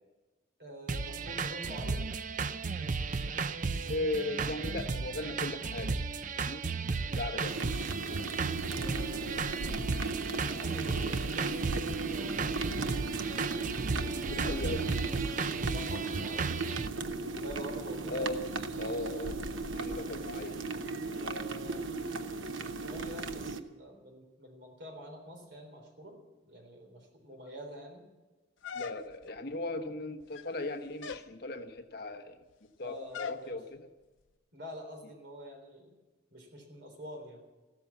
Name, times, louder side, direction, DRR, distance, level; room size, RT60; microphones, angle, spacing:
voice 1, 0.6-2.0 7.9-9.6 10.5-12.7 15.4-16.5 17.3-18.3 21.1-21.8 22.7-26.2 26.4-28.0 32.8-33.6 34.5-35.9 36.3-37.4, equal, 60° right, 3 dB, 3.7 m, -47 dB
sound 1, 0.9-16.9, right 4 dB, 40° right, 0.5 m, -34 dB
voice 2, 3.8-5.9 6.3-6.7 7.1-7.6 14.0-14.8 18.1-18.4 18.8-19.4 19.7-20.5 28.7-32.4 32.8-33.9, left 2 dB, 55° left, 5 dB, 1.2 m, -37 dB
sound 2, 7.4-23.6, right 3 dB, 90° right, 0.9 m, -36 dB
sound 3, 28.6-29.4 30.2-30.6 31.0-31.3 33.1-33.5, left 7 dB, 85° left, 0.7 m, -40 dB
15.0 x 13.0 x 7.2 m, 1.2 s
head